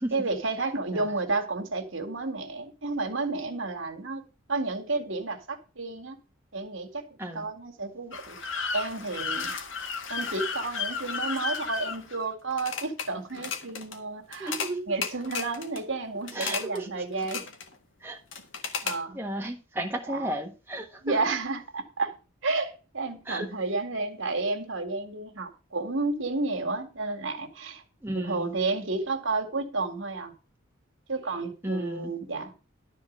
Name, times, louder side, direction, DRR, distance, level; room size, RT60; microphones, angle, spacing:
voice 1, 0.1-4.2 4.5-6.2 6.5-9.5 10.1-14.5 14.9-17.4 18.8-19.2 20.1-20.3 21.0-22.2 22.4-27.8 28.1-30.3 31.1-32.5, right 3 dB, 70° right, 2.3 m, -31 dB
sound 1, 8.1-13.1 13.3-14.0 14.3-14.7 15.0-15.8 16.3-16.8 17.1-17.7 18.3-19.0, left 5 dB, 65° left, 1.8 m, -33 dB
voice 2, 14.4-15.0 16.3-17.1 18.0-18.2 18.7-18.9 19.1-21.2 23.3-23.5 28.0-28.5 31.6-32.1, right 1 dB, 10° right, 1.4 m, -34 dB
12.5 x 4.6 x 7.4 m
head